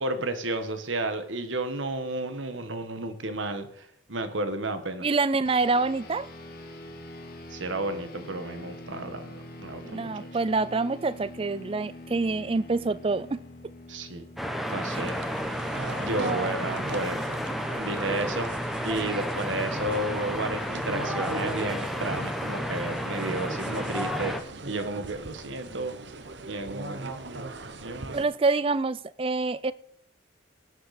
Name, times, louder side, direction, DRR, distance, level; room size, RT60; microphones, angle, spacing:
voice 1, 0.0-5.1 7.5-10.3 13.9-14.2 14.7-15.2 16.0-17.2 17.8-18.5 18.8-24.3 24.6-25.9 26.4-27.5 27.8-28.2, right 2 dB, 85° right, 9 dB, 1.4 m, -32 dB
voice 2, 5.0-6.3 9.8-13.4 14.9-15.0 16.2-16.5 16.8-16.9 28.1-29.7, right 3 dB, 30° right, 18 dB, 0.4 m, -26 dB
sound 1, 5.4-17.1, left 1 dB, 50° left, 1.6 m, -45 dB
sound 2, 14.4-24.4, equal, ahead, 1.0 m, -32 dB
sound 3, 15.0-28.2, right 3 dB, 65° right, 0.9 m, -40 dB
18.5 x 8.5 x 4.3 m, 0.68 s
head